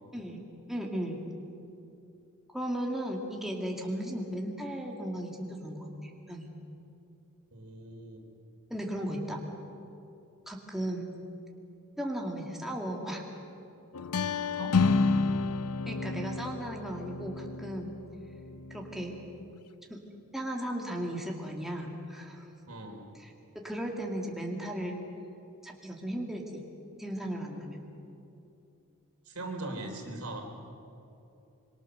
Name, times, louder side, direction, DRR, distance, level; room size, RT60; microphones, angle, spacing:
voice 1, 0.7-1.2 2.5-6.5 8.7-9.4 10.5-11.1 12.0-13.2 15.9-18.0 18.7-19.2 19.9-20.0 20.3-22.5 23.2-23.3 23.6-25.0 25.6-26.6 27.0-27.9, right 1 dB, ahead, -1 dB, 2.2 m, -36 dB
voice 2, 7.5-8.2 14.6-15.1 22.7-23.1 29.3-30.4, right 2 dB, 70° right, 2 dB, 3.8 m, -40 dB
sound 1, 13.9-19.6, left 4 dB, 90° left, 0.8 m, -30 dB
25.5 x 23.5 x 6.7 m, 2.8 s
head